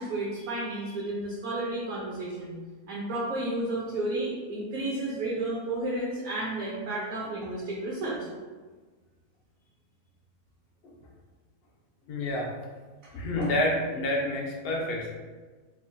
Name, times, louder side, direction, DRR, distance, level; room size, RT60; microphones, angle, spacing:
voice 1, 0.0-2.6 2.9-8.3, right 2 dB, 65° right, -4 dB, 1.0 m, -32 dB
voice 2, 12.1-12.5 13.1-15.1, left 1 dB, 70° left, -1 dB, 0.5 m, -28 dB
4.8 x 2.1 x 2.5 m, 1.4 s
omnidirectional pair, 1.7 m